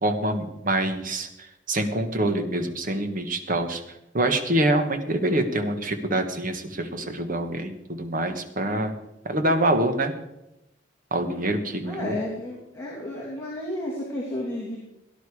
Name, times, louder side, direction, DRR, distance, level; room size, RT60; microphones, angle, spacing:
voice 1, 0.0-3.8 4.1-8.9 9.2-10.1 11.1-12.2, right 1 dB, 45° right, 7 dB, 1.5 m, -25 dB
voice 2, 11.9-14.8, left 1 dB, 15° left, -5 dB, 3.0 m, -32 dB
18.0 x 10.5 x 4.9 m, 0.90 s
head